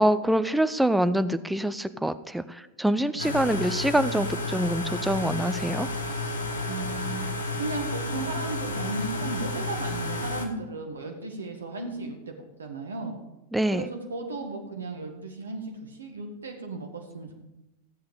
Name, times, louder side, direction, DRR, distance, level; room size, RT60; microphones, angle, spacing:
voice 1, 0.0-5.9 13.5-13.9, right 1 dB, 5° right, 12 dB, 0.5 m, -25 dB
sound 1, 3.2-10.5, left 2 dB, 70° left, 1.1 m, -31 dB
voice 2, 6.7-7.2 7.6-13.1 13.7-17.3, right 3 dB, 70° right, 3 dB, 1.7 m, -35 dB
14.0 x 7.9 x 5.1 m, 0.99 s
figure-of-eight pair, 90°, 0 cm